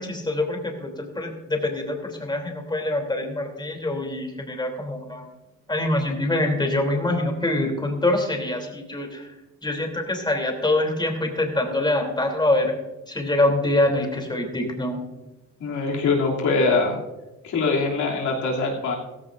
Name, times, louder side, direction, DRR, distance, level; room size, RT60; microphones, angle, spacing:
voice 1, 0.0-5.3 5.7-9.3 9.6-12.7 13.1-15.0, left 1 dB, 15° left, 2 dB, 3.2 m, -25 dB
voice 2, 15.6-17.0 17.4-19.0, left 3 dB, 75° left, -2 dB, 3.0 m, -23 dB
15.5 x 15.0 x 2.6 m, 1.0 s
cardioid pair, 90°, 30 cm